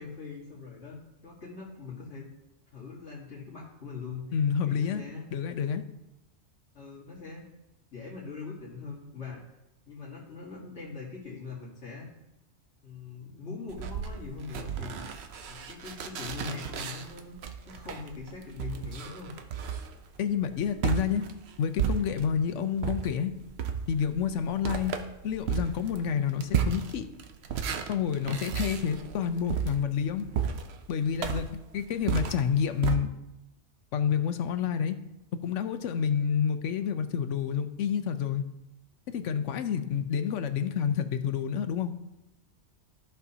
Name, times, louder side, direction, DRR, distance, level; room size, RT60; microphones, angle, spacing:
voice 1, 0.0-2.3 2.7-4.2 4.6-5.3 6.7-7.5 7.9-9.4 9.9-12.1 12.8-15.0 15.5-17.4 17.7-19.5 22.1-22.3, left 4 dB, 70° left, -7 dB, 1.8 m, -42 dB
voice 2, 4.3-5.0 5.3-5.8 20.2-21.2 21.6-23.3 23.9-24.9 25.2-27.1 27.9-30.3 30.9-33.1 33.9-34.9 35.4-38.4 39.1-41.9, left 7 dB, 85° left, 9 dB, 1.0 m, -29 dB
sound 1, 13.7-22.4 22.8-33.0, right 7 dB, 65° right, 0.9 m, -34 dB
14.0 x 5.6 x 2.8 m, 0.92 s
omnidirectional pair, 1.2 m